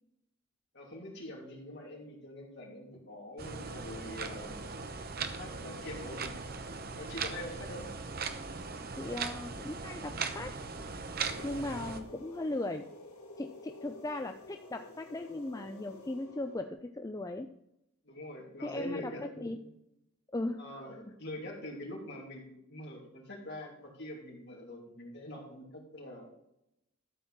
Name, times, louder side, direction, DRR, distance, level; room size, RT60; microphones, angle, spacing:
voice 1, 0.7-4.6 5.3-6.4 6.9-7.9 11.6-11.9 18.0-19.7 20.6-26.3, left 1 dB, 50° left, -1 dB, 3.0 m, -44 dB
sound 1, 3.4-12.0, right 4 dB, 45° right, 0.9 m, -39 dB
voice 2, 9.0-10.5 11.4-12.9 13.4-17.5 18.6-19.6 20.3-20.6 21.0-21.1, left 2 dB, 15° left, 6 dB, 0.4 m, -38 dB
sound 2, 11.1-16.7, left 2 dB, 85° left, 2.8 m, -50 dB
12.5 x 4.4 x 7.3 m, 0.81 s
head